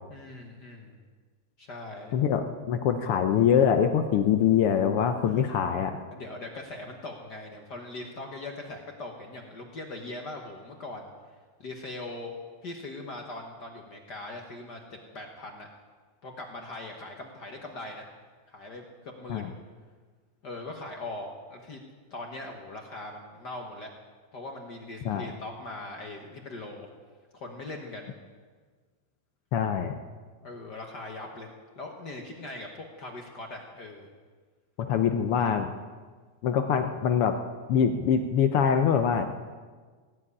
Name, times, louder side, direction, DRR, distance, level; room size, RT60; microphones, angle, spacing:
voice 1, 0.1-1.0 1.6-2.2 5.3-5.4 6.1-11.1 11.6-15.7 16.2-18.1 18.5-19.5 20.4-21.8 22.1-23.9 24.3-26.9 27.3-28.1 30.4-34.1, left 2 dB, 50° left, 2 dB, 1.3 m, -40 dB
voice 2, 2.1-6.0 19.3-19.5 25.0-25.3 29.5-30.0 34.9-35.7 36.4-37.4 37.7-39.3, left 8 dB, 80° left, 7 dB, 1.3 m, -24 dB
17.5 x 7.5 x 9.7 m, 1.5 s
omnidirectional pair, 3.4 m